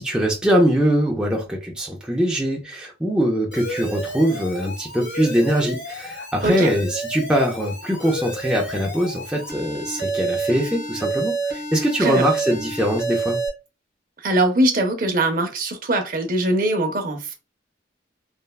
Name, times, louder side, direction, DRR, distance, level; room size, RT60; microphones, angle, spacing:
voice 1, 0.0-13.4, equal, 5° right, 0.4 m, -22 dB
Alarm, 3.5-13.5, right 3 dB, 65° left, 1.3 m, -29 dB
voice 2, 14.2-17.3, right 1 dB, 50° right, 0.6 m, -21 dB
3.3 x 2.2 x 2.2 m
head